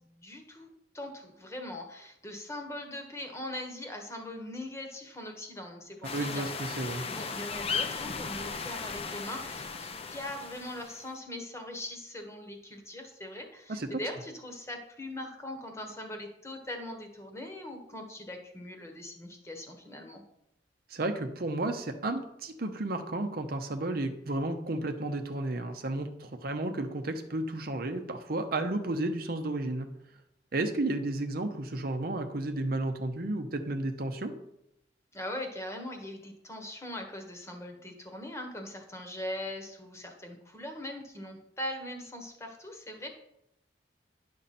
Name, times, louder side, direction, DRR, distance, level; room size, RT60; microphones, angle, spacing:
voice 1, 0.0-20.2 35.1-43.1, left 1 dB, 15° left, 4 dB, 1.2 m, -41 dB
sound 1, 6.0-11.1, left 5 dB, 35° left, 0.6 m, -36 dB
voice 2, 6.1-7.0 13.7-14.0 20.9-29.9 30.5-34.3, right 2 dB, 55° right, 6 dB, 0.8 m, -32 dB
10.0 x 6.3 x 4.2 m, 0.80 s
head